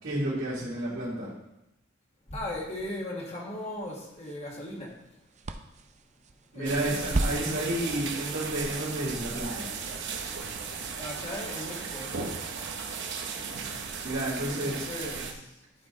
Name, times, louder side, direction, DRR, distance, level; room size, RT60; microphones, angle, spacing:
voice 1, 0.0-1.3 6.5-9.7 14.0-14.8, right 1 dB, 80° right, -10 dB, 3.1 m, -31 dB
voice 2, 2.3-4.9 6.5-7.7 11.0-12.2 14.5-15.4, left 1 dB, 30° left, -3 dB, 1.7 m, -38 dB
sound 1, 3.6-10.2, right 2 dB, 35° right, 0.5 m, -38 dB
sound 2, 6.6-15.3, right 5 dB, 60° right, 0.9 m, -36 dB
12.5 x 4.6 x 3.9 m, 0.89 s
head